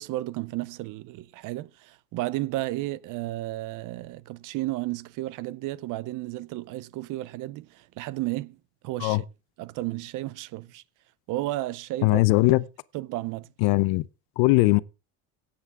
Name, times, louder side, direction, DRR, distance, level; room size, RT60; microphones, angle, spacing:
voice 1, 0.0-9.2 9.6-10.8 11.3-12.2 12.9-13.5, right 17 dB, 55° right, 0.6 m, -33 dB
voice 2, 12.0-12.6 13.6-14.1 14.4-14.8, left 21 dB, 75° left, 0.8 m, -20 dB
17.0 x 8.7 x 3.6 m
cardioid pair, 160°, 39 cm